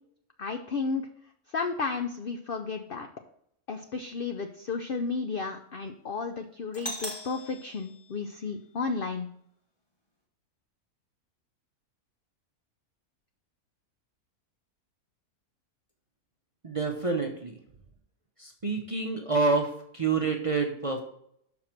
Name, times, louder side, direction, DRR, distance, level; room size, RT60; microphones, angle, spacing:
voice 1, 0.4-1.0 1.5-3.1 3.7-9.3, left 4 dB, 65° left, 6 dB, 0.5 m, -33 dB
Doorbell, 6.7-8.7, equal, 20° left, 1.1 m, -40 dB
voice 2, 16.6-17.6 18.4-21.0, right 4 dB, 30° right, 2 dB, 0.6 m, -28 dB
6.1 x 4.8 x 5.9 m, 0.70 s
omnidirectional pair, 1.6 m